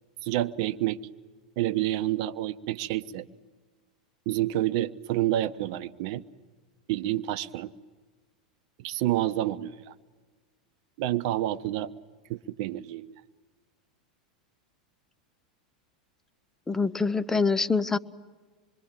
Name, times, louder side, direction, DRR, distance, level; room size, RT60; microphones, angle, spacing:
voice 1, 0.2-1.0 1.6-3.2 4.3-6.2 6.9-7.7 8.8-9.9 11.0-11.9 12.3-13.1, right 14 dB, 55° right, 14 dB, 0.9 m, -28 dB
voice 2, 16.7-18.0, left 4 dB, 10° left, 14 dB, 0.8 m, -25 dB
26.5 x 22.0 x 9.1 m, 1.4 s
hypercardioid pair, 90°, 4 cm